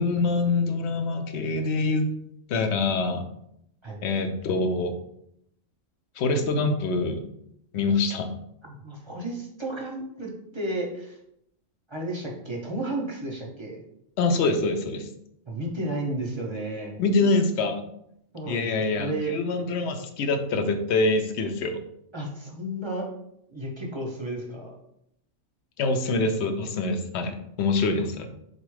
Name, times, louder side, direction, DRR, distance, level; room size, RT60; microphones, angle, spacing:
voice 1, 0.0-2.1 2.5-3.2 4.0-4.9 6.2-7.2 7.7-8.3 14.2-15.1 17.0-17.8 18.5-21.8 25.8-28.3, left 3 dB, 65° left, 7 dB, 0.8 m, -25 dB
voice 2, 8.6-11.2 11.9-13.8 15.5-17.0 18.3-19.3 22.1-23.1 23.5-24.7, right 1 dB, 30° right, -2 dB, 0.6 m, -33 dB
4.0 x 2.4 x 4.7 m, 0.76 s
omnidirectional pair, 1.4 m